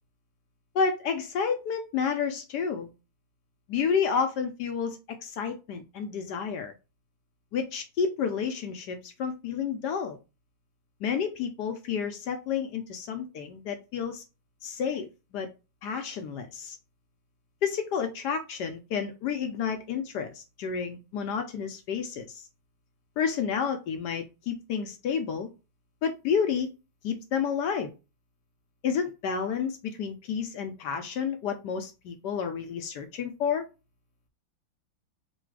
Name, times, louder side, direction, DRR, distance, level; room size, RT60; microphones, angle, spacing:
voice 1, 0.7-2.9 3.7-6.7 7.5-10.2 11.0-14.2 14.6-15.5 15.8-16.8 17.6-22.5 23.2-25.5 26.0-26.7 27.0-27.9 28.8-33.6, left 6 dB, 70° left, 6 dB, 1.0 m, -30 dB
4.1 x 2.3 x 4.6 m, 0.28 s
omnidirectional pair, 2.2 m